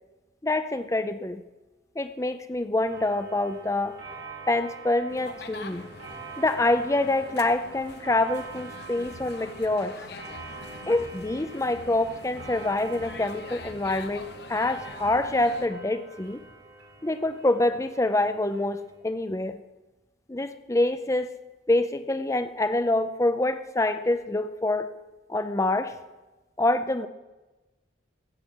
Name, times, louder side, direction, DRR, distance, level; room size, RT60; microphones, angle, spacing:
voice 1, 0.4-1.4 2.0-4.0 4.5-5.9 6.4-10.0 10.9-16.4 17.0-19.6 20.3-21.3 21.7-24.9 25.3-25.9 26.6-27.1, left 2 dB, 15° left, 10 dB, 0.5 m, -26 dB
Clock, 2.8-19.0, right 4 dB, 85° right, 5.0 m, -45 dB
sound 1, 5.1-15.7, left 3 dB, 55° left, 0.9 m, -44 dB
15.5 x 8.2 x 7.3 m, 1.1 s
head